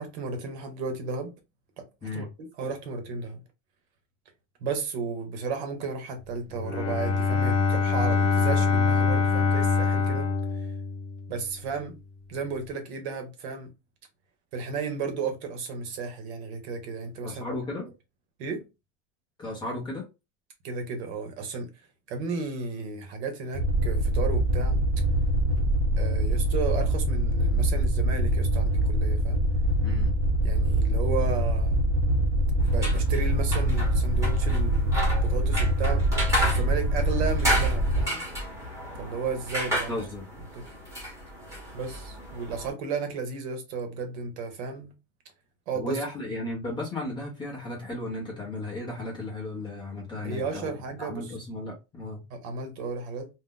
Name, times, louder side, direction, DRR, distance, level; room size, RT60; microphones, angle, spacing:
voice 1, 0.0-1.3 1.8-1.9 2.1-3.4 4.6-10.7 11.3-12.0 12.3-13.7 14.5-17.5 18.4-18.7 20.6-21.7 22.1-24.8 26.0-29.4 30.4-31.8 32.6-36.0 36.4-38.2 39.0-40.0 40.5-40.7 41.7-44.9 45.7-46.0 50.2-51.3 52.3-53.3, right 4 dB, 55° right, 0.9 m, -33 dB
Bowed string instrument, 6.5-11.4, left 4 dB, 60° left, 0.9 m, -24 dB
voice 2, 17.2-17.9 19.4-20.1 29.8-30.1 39.9-40.3 45.7-52.2, left 2 dB, 10° left, 0.6 m, -35 dB
sound 1, 23.5-38.0, right 1 dB, 35° right, 0.5 m, -24 dB
sound 2, 32.6-42.7, equal, 5° right, 0.9 m, -33 dB
2.6 x 2.1 x 3.6 m
supercardioid pair, 160°, 40 cm